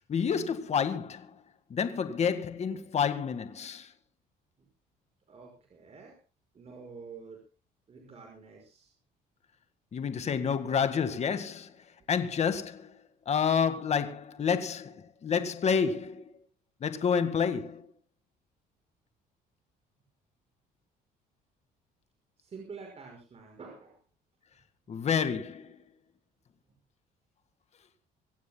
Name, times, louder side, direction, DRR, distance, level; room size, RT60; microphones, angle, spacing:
voice 1, 0.1-1.3 1.7-3.9 9.9-11.7 12.1-12.9 13.3-16.2 16.8-17.8 24.9-25.8, left 6 dB, 40° left, 1.9 m, -29 dB
voice 2, 5.3-6.2 6.5-7.4 7.9-8.9 22.4-24.0, right 5 dB, 40° right, 5.7 m, -47 dB
25.0 x 16.0 x 2.3 m
cardioid pair, 110°, 17 cm